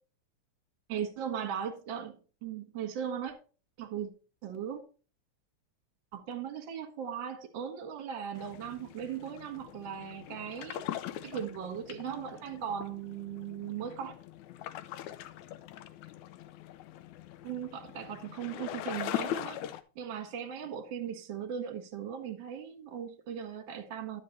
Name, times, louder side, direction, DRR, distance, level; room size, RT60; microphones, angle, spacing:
voice 1, 0.9-3.3 3.8-4.1 4.4-4.8 6.1-10.9 11.2-14.2 17.4-19.6 19.9-24.2, right 8 dB, 50° right, 1.6 m, -38 dB
sound 1, 8.4-19.8, left 12 dB, 80° left, 1.9 m, -41 dB
10.5 x 7.0 x 3.1 m
omnidirectional pair, 3.4 m